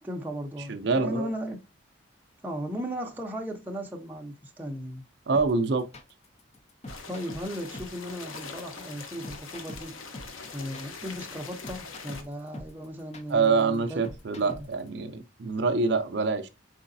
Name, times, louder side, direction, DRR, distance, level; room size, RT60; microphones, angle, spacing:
voice 1, 0.0-1.6 2.4-5.0 7.1-9.9 10.5-14.2 14.4-14.6, equal, 10° right, 0.7 m, -36 dB
voice 2, 0.7-1.3 5.3-5.8 13.3-16.5, right 4 dB, 55° right, 0.4 m, -25 dB
sound 1, 5.3-14.9, left 1 dB, 35° left, 0.6 m, -44 dB
sound 2, 6.9-12.2, left 4 dB, 85° left, 0.8 m, -43 dB
4.8 x 3.8 x 2.6 m
head